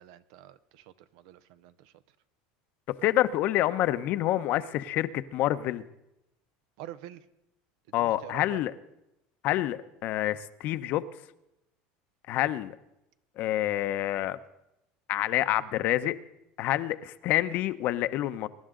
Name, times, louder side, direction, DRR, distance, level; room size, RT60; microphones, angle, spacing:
voice 1, 0.0-1.9 6.8-7.3 8.0-8.6, right 12 dB, 75° right, 14 dB, 0.8 m, -47 dB
voice 2, 3.0-5.8 7.9-8.7 9.4-11.0 12.3-12.8 13.4-14.4 15.1-16.2 16.6-18.5, left 14 dB, 55° left, 13 dB, 0.7 m, -27 dB
23.0 x 11.0 x 3.8 m, 0.88 s
supercardioid pair, 120°, 4 cm